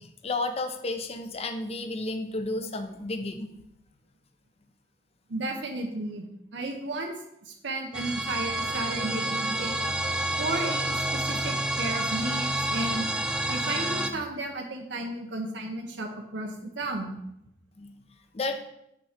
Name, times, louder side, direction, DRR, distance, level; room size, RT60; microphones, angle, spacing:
voice 1, 0.2-3.5 17.8-17.9 18.3-18.6, left 2 dB, 35° left, 8 dB, 0.6 m, -32 dB
voice 2, 5.3-6.2 6.5-7.1 7.4-9.8 10.4-13.1 13.5-17.1, right 2 dB, 85° right, 3 dB, 0.8 m, -33 dB
sound 1, 7.9-14.1, right 1 dB, 5° right, 0.4 m, -29 dB
6.0 x 4.2 x 5.0 m, 0.80 s
head